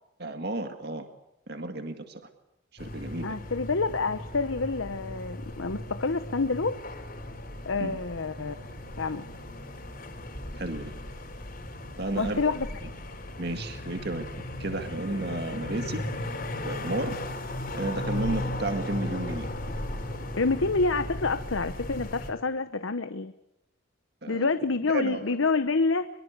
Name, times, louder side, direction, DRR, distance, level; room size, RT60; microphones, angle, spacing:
voice 1, 0.2-1.1 1.5-2.2 2.7-3.4 7.8-8.0 10.6-10.9 12.0-12.5 12.8-12.9 13.4-14.3 14.6-16.1 16.6-17.2 17.7-19.5 24.2-24.5 24.9-25.3, right 2 dB, 55° right, 6 dB, 2.0 m, -32 dB
sound 1, 2.8-22.3, left 1 dB, 45° left, 4.4 m, -36 dB
voice 2, 3.2-6.8 7.6-8.6 9.0-9.2 12.2-12.7 20.4-23.3 24.3-26.1, left 3 dB, 80° left, 10 dB, 1.0 m, -27 dB
23.5 x 23.0 x 8.2 m, 0.85 s
head